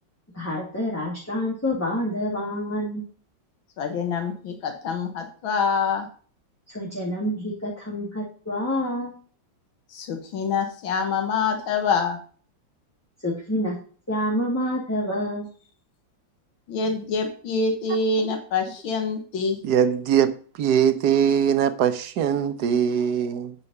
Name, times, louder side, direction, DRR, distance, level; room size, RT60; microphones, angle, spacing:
voice 1, 0.3-3.0 6.7-9.2 13.2-13.8 14.1-15.5, left 1 dB, 10° left, -4 dB, 2.0 m, -27 dB
voice 2, 3.8-6.1 9.9-12.2 16.7-19.6, left 4 dB, 85° left, 5 dB, 2.1 m, -25 dB
voice 3, 19.6-20.3 20.6-23.5, right 8 dB, 65° right, 11 dB, 1.2 m, -21 dB
9.0 x 5.8 x 5.4 m, 0.42 s
omnidirectional pair, 2.1 m